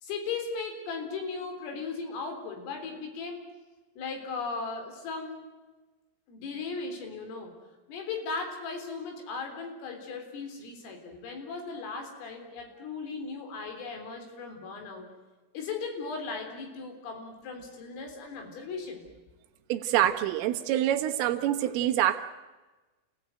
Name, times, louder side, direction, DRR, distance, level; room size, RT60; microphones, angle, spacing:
voice 1, 0.0-3.4 4.0-5.4 6.3-7.5 7.9-15.1 15.5-19.0, left 4 dB, 75° left, 4 dB, 6.3 m, -37 dB
voice 2, 19.7-22.3, right 12 dB, 75° right, 6 dB, 3.7 m, -26 dB
29.5 x 17.0 x 9.1 m, 1.2 s
omnidirectional pair, 6.0 m